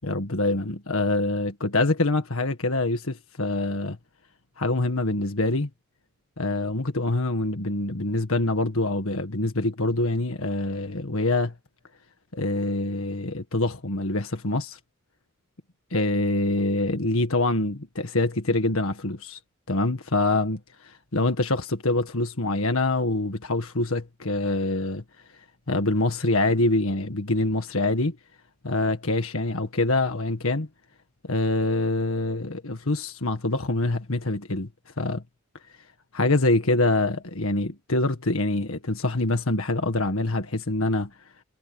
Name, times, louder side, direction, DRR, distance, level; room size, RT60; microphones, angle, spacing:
voice 1, 0.0-4.0 4.6-5.7 6.4-11.5 12.3-14.8 15.9-19.4 19.7-20.6 20.9-25.0 25.7-28.2 28.6-30.7 31.2-34.7 35.0-35.2 36.1-41.1, left 2 dB, 70° left, 1.8 m, -25 dB
head